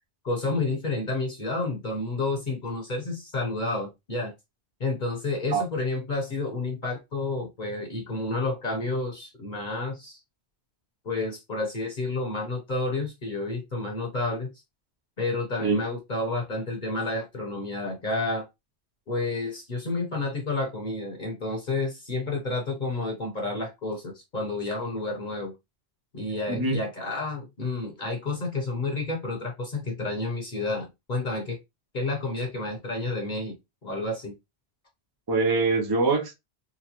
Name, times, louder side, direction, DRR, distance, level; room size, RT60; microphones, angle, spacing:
voice 1, 0.2-4.3 4.8-10.2 11.0-14.5 15.2-18.4 19.1-25.5 26.1-31.6 31.9-33.5 33.8-34.3, left 2 dB, 45° left, 1.0 m, -30 dB
voice 2, 26.5-26.8 35.3-36.3, right 3 dB, 30° right, 0.5 m, -23 dB
3.9 x 2.2 x 2.9 m
omnidirectional pair, 1.1 m